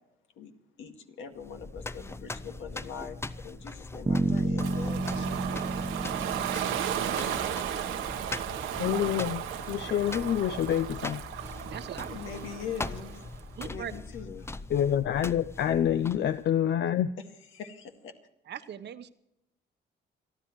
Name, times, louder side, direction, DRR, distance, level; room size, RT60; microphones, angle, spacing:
voice 1, 0.8-3.2 3.4-5.5 12.1-13.3 13.6-14.5 17.5-18.1, left 7 dB, 80° left, 4 dB, 2.0 m, -42 dB
sound 1, 1.4-16.5, left 2 dB, 15° left, 0.5 m, -41 dB
Bass guitar, 4.1-8.1, right 2 dB, 15° right, 1.1 m, -31 dB
Ocean, 4.6-13.4, right 9 dB, 90° right, 1.3 m, -34 dB
voice 2, 8.8-9.4 9.7-11.2 14.7-17.1, left 10 dB, 60° left, 12 dB, 0.6 m, -27 dB
voice 3, 11.7-12.8 13.6-14.0 18.4-19.1, right 8 dB, 60° right, 11 dB, 1.0 m, -41 dB
28.5 x 11.0 x 3.2 m, 0.84 s
cardioid pair, 90°, 20 cm